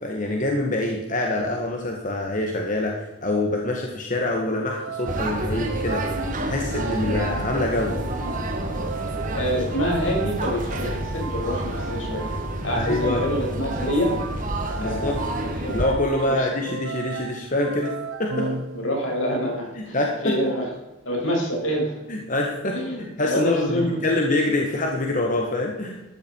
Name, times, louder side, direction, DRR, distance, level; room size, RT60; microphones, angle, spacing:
voice 1, 0.0-8.0 12.7-13.2 14.8-15.2 15.7-17.9 18.2-18.5 19.7-20.6 22.1-22.8 23.2-26.0, left 2 dB, 40° left, 1 dB, 1.8 m, -25 dB
sound 1, 4.7-19.2, right 5 dB, 85° right, 1.1 m, -36 dB
sound 2, 5.1-15.9, right 1 dB, 40° right, 2.3 m, -29 dB
voice 2, 9.3-12.3 12.6-14.2 14.8-15.7 16.3-16.5 18.4-20.7 21.0-22.0 22.7-24.2, equal, 75° left, -1 dB, 6.1 m, -27 dB
14.0 x 13.0 x 4.8 m, 1.0 s
head